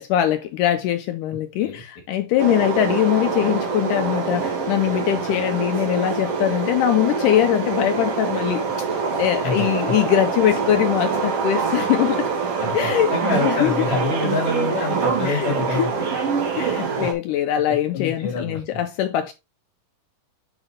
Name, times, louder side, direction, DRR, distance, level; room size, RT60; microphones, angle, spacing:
voice 1, 0.0-12.3 12.7-13.7 15.2-15.5 15.8-15.9 16.6-19.3, left 12 dB, 85° left, 1.8 m, -22 dB
voice 2, 1.3-1.8 9.4-9.9 12.6-15.9 16.7-17.1 17.7-18.8, left 4 dB, 55° left, 3.3 m, -27 dB
sound 1, 2.4-17.1, right 5 dB, 50° right, 2.1 m, -25 dB
7.8 x 4.9 x 3.8 m
omnidirectional pair, 4.2 m